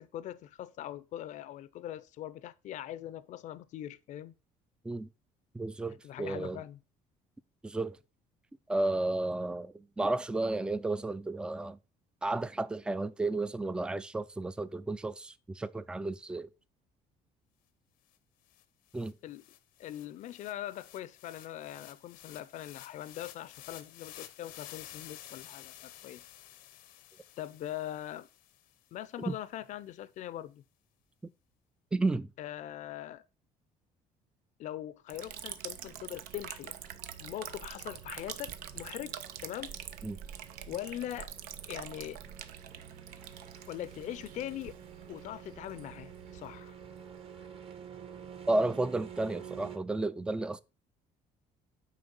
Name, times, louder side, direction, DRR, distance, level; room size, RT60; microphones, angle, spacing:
voice 1, 0.0-4.3 6.0-6.8 19.2-19.4 19.8-26.2 27.4-28.3 28.9-30.6 32.4-33.2 34.6-36.7 37.2-39.8 40.7-41.3 41.7-42.2 43.7-44.8 45.1-46.8, left 12 dB, 55° left, 0.5 m, -41 dB
voice 2, 5.5-6.6 7.6-8.0 8.7-11.8 12.2-16.5 18.9-19.1 29.3-29.4 31.9-32.3 40.0-40.2 48.5-50.6, right 2 dB, 5° right, 0.3 m, -32 dB
sound 1, 18.1-18.2 18.5-28.8, left 13 dB, 90° left, 0.9 m, -52 dB
sound 2, 35.1-49.8, right 8 dB, 40° right, 1.2 m, -51 dB
Liquid, 35.1-47.6, right 10 dB, 80° right, 0.7 m, -46 dB
9.0 x 3.3 x 5.3 m
cardioid pair, 135°, 15 cm